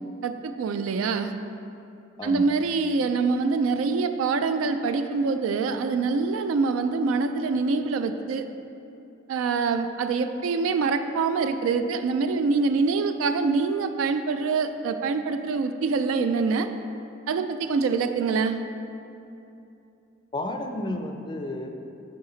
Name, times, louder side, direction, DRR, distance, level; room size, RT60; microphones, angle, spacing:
voice 1, 0.2-1.3 2.2-8.5 9.3-16.7 17.3-18.6, right 4 dB, 80° right, 9 dB, 0.3 m, -25 dB
voice 2, 2.2-2.6 20.3-21.7, left 1 dB, 25° left, 5 dB, 0.4 m, -32 dB
7.0 x 4.8 x 3.8 m, 2.7 s
head